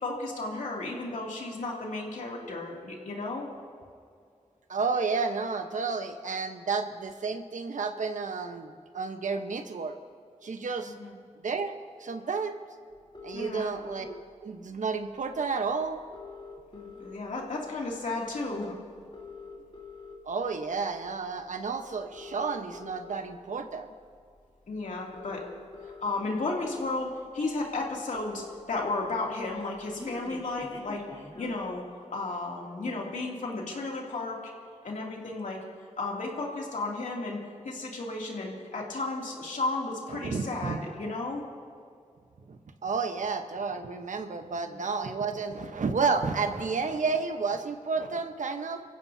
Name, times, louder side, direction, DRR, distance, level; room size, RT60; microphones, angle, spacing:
voice 1, 0.0-3.5 11.0-11.1 13.3-13.7 16.7-18.8 24.7-25.5 26.0-31.0 31.4-31.8 32.1-34.5 34.8-35.6 36.0-41.4 44.6-44.8, left 2 dB, 85° left, -2 dB, 2.8 m, -33 dB
voice 2, 4.7-10.0 10.4-10.9 11.3-11.7 12.0-12.6 13.2-16.0 20.2-23.9 40.1-40.8 42.5-48.8, right 4 dB, 80° right, 6 dB, 1.1 m, -31 dB
sound 1, 13.1-14.2 15.3-15.4 15.7-15.8 16.0-17.4 17.9-18.1 19.0-20.1 20.8-21.1 22.0-23.1 24.4-24.5 25.0-26.1 26.8-26.9 27.2-27.3 27.5-27.6 27.8-29.1 29.5-31.6, left 4 dB, 40° left, 2.9 m, -45 dB
25.5 x 15.5 x 2.8 m, 2.3 s
cardioid pair, 50°, 13 cm